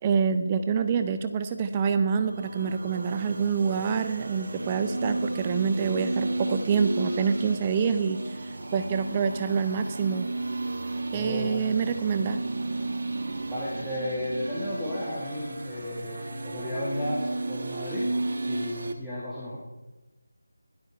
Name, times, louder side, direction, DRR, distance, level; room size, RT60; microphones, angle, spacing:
voice 1, 0.0-10.3 11.1-12.4, right 6 dB, 20° right, 9 dB, 0.5 m, -26 dB
sound 1, 2.0-18.9, right 2 dB, 45° right, 1.5 m, -33 dB
voice 2, 11.1-11.7 13.5-18.1 18.5-19.6, left 1 dB, ahead, -14 dB, 2.0 m, -33 dB
16.0 x 12.0 x 4.8 m, 1.1 s
figure-of-eight pair, 165°, 0 cm